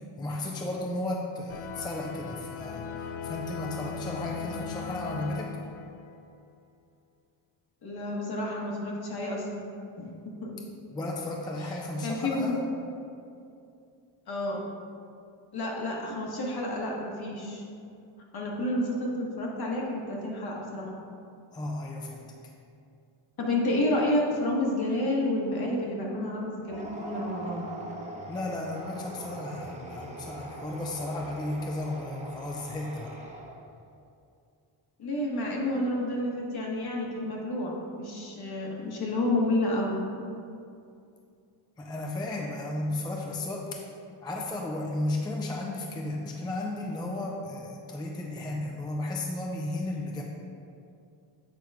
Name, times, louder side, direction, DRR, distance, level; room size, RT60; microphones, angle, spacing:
voice 1, 0.2-2.9 3.2-5.5 10.9-12.6 21.5-22.2 28.3-33.2 41.8-43.7 44.2-50.2, left 2 dB, 10° left, -1 dB, 0.4 m, -34 dB
sound 1, 1.5-6.3, left 6 dB, 75° left, 0.5 m, -38 dB
voice 2, 7.8-9.6 10.0-10.5 12.0-12.6 14.3-14.6 15.5-17.6 18.3-20.9 23.4-27.7 35.0-40.0, left 1 dB, 50° left, -2 dB, 1.4 m, -30 dB
sound 2, 26.6-33.8, right 2 dB, 15° right, 0.9 m, -42 dB
8.1 x 3.0 x 4.7 m, 2.5 s
cardioid pair, 110°, 49 cm